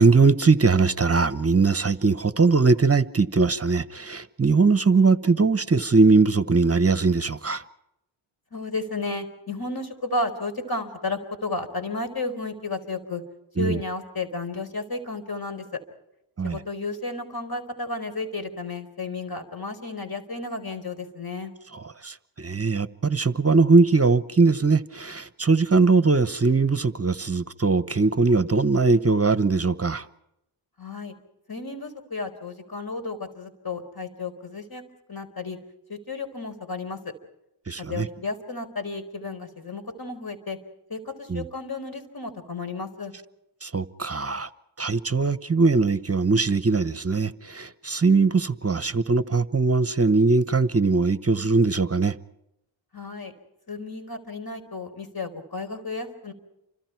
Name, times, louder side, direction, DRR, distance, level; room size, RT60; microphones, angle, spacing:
voice 1, 0.0-7.6 13.6-13.8 16.4-16.6 21.7-30.0 37.7-38.1 41.3-41.4 43.6-44.5 44.8-52.1, right 4 dB, 30° right, 1.0 m, -21 dB
voice 2, 8.5-13.2 13.6-15.6 16.4-21.5 30.8-31.1 31.5-34.8 35.1-35.6 35.9-37.0 37.8-40.6 40.9-43.1 52.9-53.3 53.7-56.3, left 3 dB, 45° left, 4.6 m, -33 dB
29.5 x 25.5 x 4.7 m
cardioid pair, 55°, 50 cm